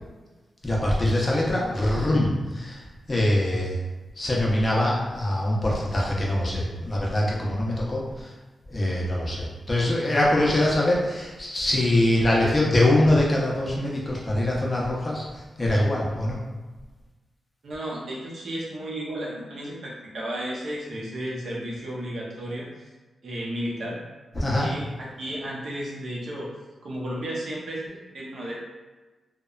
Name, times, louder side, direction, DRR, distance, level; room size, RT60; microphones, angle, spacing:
voice 1, 0.6-2.8 3.1-3.7 4.2-8.0 8.7-15.2 15.6-16.4 24.4-24.7, left 1 dB, 25° left, -4 dB, 0.5 m, -23 dB
voice 2, 17.6-22.9 23.2-24.0 24.3-26.5 26.8-28.6, right 1 dB, 65° right, -5 dB, 0.6 m, -33 dB
2.8 x 2.1 x 2.3 m, 1.2 s
wide cardioid pair, 155°, 0 cm